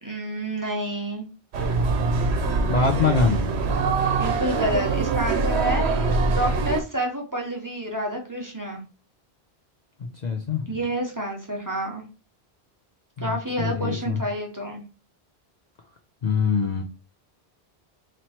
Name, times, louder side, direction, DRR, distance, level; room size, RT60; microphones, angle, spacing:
voice 1, 0.0-1.3 4.1-5.9 6.3-8.8 10.7-12.0 13.2-14.8, right 1 dB, 20° right, 0 dB, 0.9 m, -29 dB
sound 1, 1.5-6.8, right 4 dB, 80° right, 1.0 m, -23 dB
voice 2, 2.7-3.5 10.2-10.7 13.2-14.2 16.2-16.8, left 5 dB, 50° left, 3 dB, 0.6 m, -23 dB
3.1 x 3.0 x 4.2 m, 0.31 s
omnidirectional pair, 1.1 m